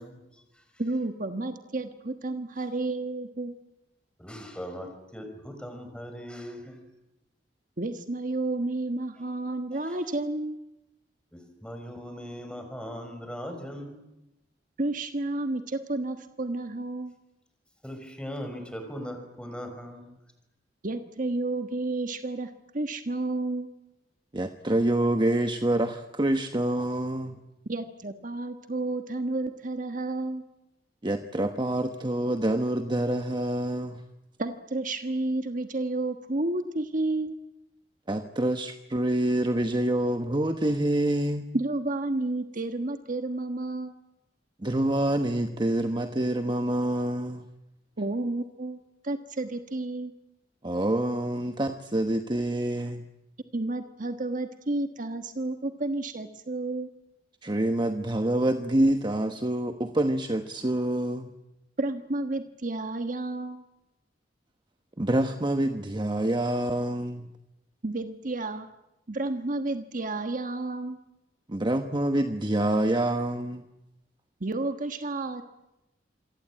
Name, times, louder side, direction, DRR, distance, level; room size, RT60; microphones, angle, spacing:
voice 1, 0.0-0.8 1.3-1.6 4.2-6.8 9.7-10.0 11.3-14.1 17.8-20.2, equal, 5° left, 6 dB, 5.7 m, -40 dB
voice 2, 0.8-3.5 7.8-10.6 14.8-17.2 20.8-23.7 27.7-30.4 34.4-37.4 41.5-43.9 48.0-50.1 53.5-56.9 61.8-63.6 67.8-68.7 69.1-71.0 74.4-75.4, right 2 dB, 50° right, 8 dB, 1.3 m, -31 dB
voice 3, 24.3-27.4 31.0-34.0 38.1-41.4 44.6-47.4 50.6-53.0 57.4-61.3 65.0-67.3 71.5-73.6, right 1 dB, 25° right, 7 dB, 1.1 m, -26 dB
27.5 x 23.0 x 8.8 m, 0.94 s
head